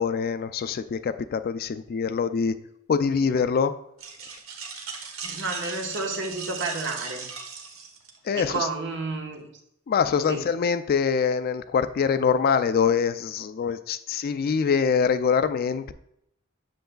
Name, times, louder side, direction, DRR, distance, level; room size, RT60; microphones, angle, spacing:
voice 1, 0.0-2.6 2.9-3.7 8.2-8.7 9.9-15.9, left 6 dB, 45° left, 11 dB, 0.3 m, -24 dB
sound 1, 4.0-8.4, right 5 dB, 80° right, 1.0 m, -38 dB
voice 2, 5.2-7.3 8.3-9.5 10.3-10.4, right 3 dB, 60° right, 2 dB, 1.1 m, -30 dB
7.8 x 6.5 x 2.3 m, 0.75 s
head